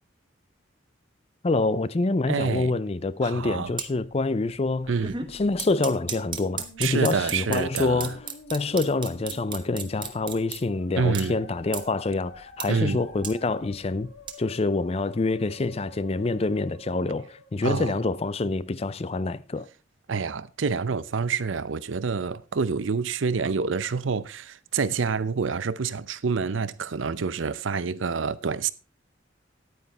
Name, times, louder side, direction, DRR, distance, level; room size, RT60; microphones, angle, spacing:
voice 1, 1.4-5.0 5.3-8.2 8.5-14.1 14.4-19.7, left 3 dB, 30° left, 0.4 m, -26 dB
voice 2, 2.3-2.7 3.2-3.7 4.9-5.1 6.8-8.1 11.0-11.4 12.7-13.0 17.6-18.0 20.1-28.7, right 5 dB, 80° right, 0.6 m, -27 dB
sound 1, 3.7-3.9 4.3-4.6 4.8-10.6 11.1-11.2 11.7-11.8 12.3-12.7 12.9-14.3, right 7 dB, 25° right, 1.0 m, -34 dB
Musical instrument, 4.7-17.7, left 2 dB, 80° left, 2.6 m, -49 dB
9.7 x 9.3 x 4.1 m
head